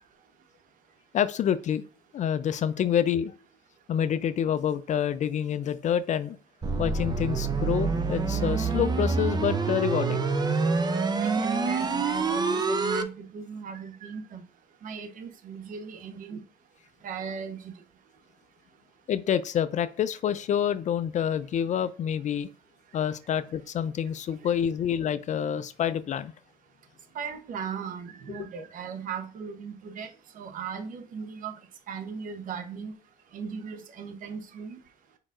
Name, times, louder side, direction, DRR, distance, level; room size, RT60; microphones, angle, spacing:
voice 1, 1.1-1.8 2.1-3.3 3.9-6.4 6.8-10.2 19.1-22.5 22.9-26.3 28.3-28.5, left 9 dB, 45° left, 0.4 m, -27 dB
sound 1, 6.6-13.0, right 4 dB, 25° right, 0.6 m, -26 dB
voice 2, 11.2-14.4 14.8-16.4 17.0-17.7 27.1-30.1 30.3-31.5 31.9-32.9 33.3-34.8, right 6 dB, 55° right, 0.8 m, -37 dB
4.8 x 4.5 x 2.4 m
cardioid pair, 110°, 17 cm